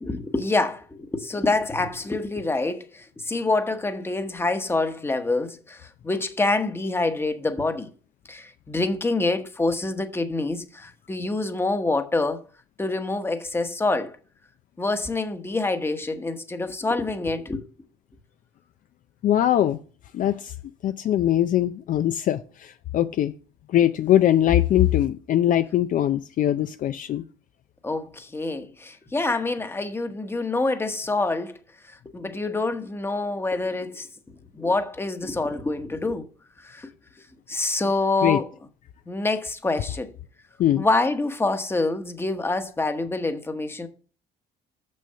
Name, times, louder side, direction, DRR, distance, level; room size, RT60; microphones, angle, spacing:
voice 1, 0.0-7.9 8.3-12.4 12.8-14.2 14.8-17.7 27.8-31.6 31.9-36.3 36.6-36.9 37.5-38.5 39.1-40.1 40.8-43.9, left 2 dB, 15° left, 1.0 m, -26 dB
voice 2, 19.2-19.8 20.1-20.5 20.8-23.3 23.7-27.2 38.2-38.4 40.6-40.8, left 12 dB, 50° left, 0.5 m, -21 dB
6.8 x 6.4 x 6.7 m
cardioid pair, 110°, 17 cm